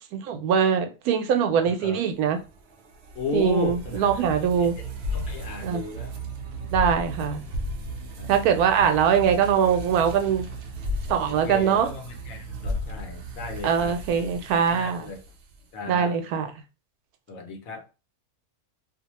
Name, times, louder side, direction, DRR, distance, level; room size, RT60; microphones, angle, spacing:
voice 1, 0.0-2.4 3.3-4.8 5.6-5.8 6.7-7.4 8.3-10.5 11.1-11.9 13.6-15.1 15.9-16.5, right 7 dB, 85° right, 1.1 m, -22 dB
voice 2, 1.6-2.0 3.1-4.1 4.4-4.7 5.1-6.1 8.2-8.3 11.3-14.3 14.7-15.2 15.7-16.2 17.3-17.8, left 4 dB, 70° left, 1.0 m, -35 dB
sound 1, 2.3-15.7, equal, 65° right, 0.7 m, -35 dB
2.7 x 2.1 x 2.9 m
omnidirectional pair, 1.5 m